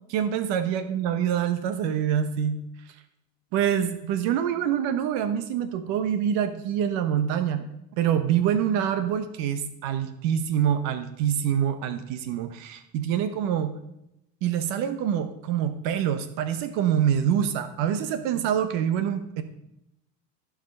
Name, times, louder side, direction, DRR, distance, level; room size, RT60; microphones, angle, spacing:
voice 1, 0.1-2.6 2.9-3.0 3.5-7.7 8.0-13.7 14.4-19.4, right 9 dB, 75° right, 10 dB, 1.0 m, -26 dB
15.0 x 5.1 x 5.3 m, 0.86 s
cardioid pair, 135°, 45 cm